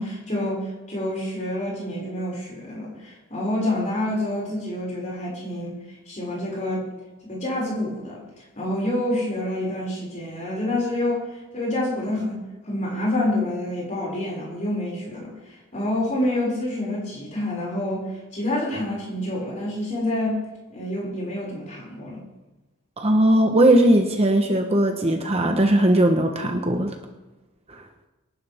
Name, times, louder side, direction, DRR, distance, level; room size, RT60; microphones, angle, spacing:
voice 1, 0.0-5.8 6.1-6.9 7.2-11.3 11.5-22.2, left 1 dB, 35° left, -5 dB, 6.1 m, -27 dB
voice 2, 23.0-26.9, right 1 dB, 30° right, 4 dB, 1.1 m, -18 dB
24.0 x 11.5 x 3.6 m, 1.1 s
head